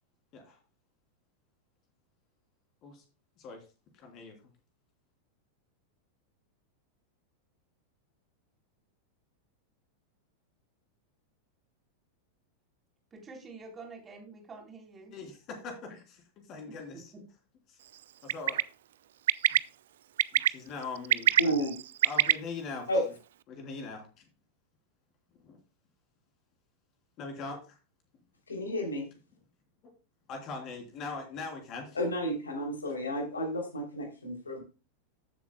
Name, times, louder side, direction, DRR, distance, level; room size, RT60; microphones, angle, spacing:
voice 1, 4.0-4.3 15.1-16.2 16.5-17.1 17.7-17.8 18.2-18.6 20.3-21.7 22.0-22.8 23.5-24.2 25.4-25.6 27.2-27.6 30.3-32.0, left 4 dB, 35° left, 3 dB, 3.1 m, -41 dB
voice 2, 13.1-15.1 16.7-17.2, right 3 dB, 20° right, 1 dB, 3.5 m, -48 dB
Bird, 18.3-18.6 19.3-19.6 20.2-20.5 21.0-22.3, right 12 dB, 60° right, 0.3 m, -23 dB
voice 3, 21.4-21.7 22.9-23.0 28.5-29.0 31.9-34.6, equal, 75° left, 2 dB, 3.1 m, -31 dB
14.5 x 7.6 x 2.2 m, 0.32 s
figure-of-eight pair, 90°, 0 cm